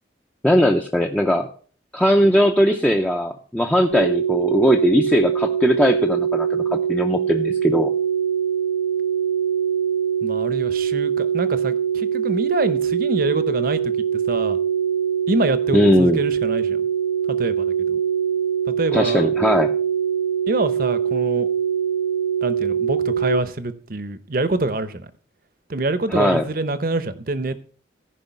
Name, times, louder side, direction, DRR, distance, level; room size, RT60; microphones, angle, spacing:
voice 1, 0.4-1.5 1.9-7.9 15.7-16.2 18.9-19.7 26.1-26.4, equal, 5° left, 0.6 m, -19 dB
sound 1, 3.9-23.3, right 8 dB, 85° left, 1.2 m, -22 dB
voice 2, 10.2-13.9 14.3-14.6 15.3-16.8 17.3-18.0 18.8-19.3 20.5-21.5 22.4-25.1 25.7-27.6, right 2 dB, 50° right, 0.8 m, -25 dB
14.5 x 5.3 x 5.4 m
head